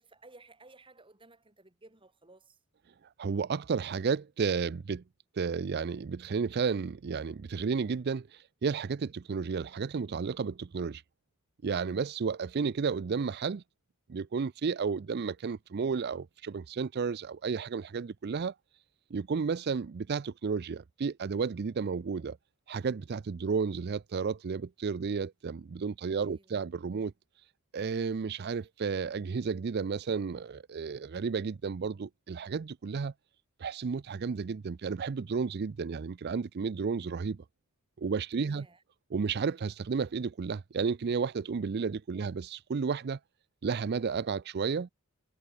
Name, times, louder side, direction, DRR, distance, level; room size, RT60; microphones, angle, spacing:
voice 1, 0.0-2.6 26.1-26.6 38.4-38.8 42.1-42.3, right 2 dB, 25° right, 3.2 m, -57 dB
voice 2, 3.2-5.0 5.4-11.0 11.6-13.6 14.1-18.5 19.1-22.4 22.7-27.1 27.7-33.1 33.6-37.4 38.0-38.7 39.1-43.2 43.6-44.9, right 5 dB, 50° right, 0.4 m, -32 dB
head